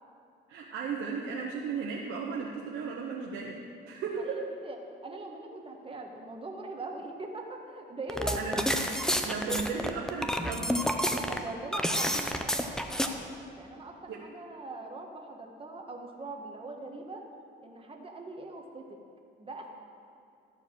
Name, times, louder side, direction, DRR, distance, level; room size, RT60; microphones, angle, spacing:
voice 1, 0.5-3.6 3.9-4.4 8.4-9.0 9.2-10.8 14.1-14.2, right 5 dB, 80° right, -2 dB, 1.0 m, -35 dB
voice 2, 4.2-4.8 5.0-8.4 11.1-13.3 13.5-17.2 17.6-19.0 19.4-19.7, right 2 dB, 25° right, 1 dB, 1.5 m, -41 dB
sound 1, 8.1-13.1, equal, 5° left, 0.7 m, -29 dB
13.0 x 4.5 x 7.5 m, 2.5 s
cardioid pair, 90°, 20 cm